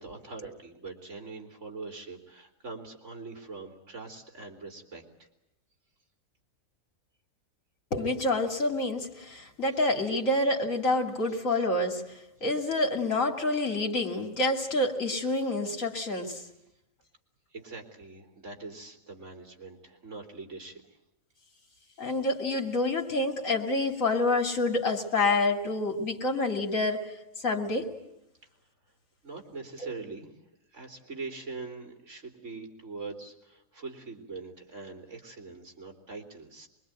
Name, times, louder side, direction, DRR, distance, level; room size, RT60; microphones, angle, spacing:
voice 1, 0.0-5.3 17.5-20.8 21.9-22.1 29.2-30.3 30.7-36.7, right 3 dB, 55° right, 3 dB, 3.7 m, -43 dB
voice 2, 7.9-16.4 22.0-27.9 29.8-29.9, left 2 dB, 65° left, 3 dB, 3.3 m, -28 dB
24.0 x 22.5 x 9.1 m, 0.82 s
omnidirectional pair, 1.5 m